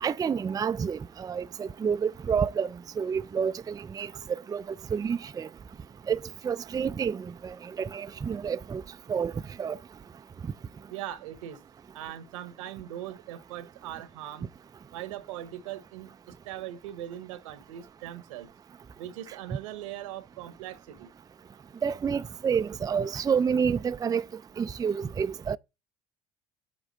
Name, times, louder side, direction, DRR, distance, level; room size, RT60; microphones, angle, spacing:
voice 1, 0.0-2.7 3.0-4.1 4.5-4.6 4.9-5.5 6.1-6.2 6.4-8.8 9.1-9.3 9.6-9.8 21.8-24.2 24.6-25.6, right 6 dB, 25° right, 0.4 m, -29 dB
voice 2, 10.9-11.6 11.9-14.5 14.9-18.5 18.9-21.1, right 12 dB, 85° right, 1.1 m, -40 dB
8.9 x 3.3 x 6.4 m
hypercardioid pair, 70°, 16 cm